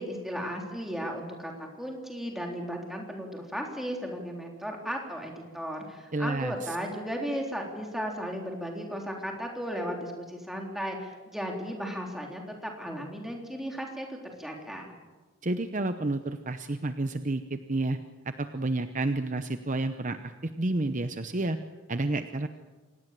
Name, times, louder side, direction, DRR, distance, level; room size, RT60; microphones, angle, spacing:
voice 1, 0.0-14.9, equal, ahead, 0 dB, 3.7 m, -35 dB
voice 2, 6.1-6.8 15.4-18.0 18.3-21.6 21.9-22.5, right 2 dB, 35° right, 9 dB, 0.8 m, -30 dB
26.0 x 19.0 x 7.6 m, 1.3 s
head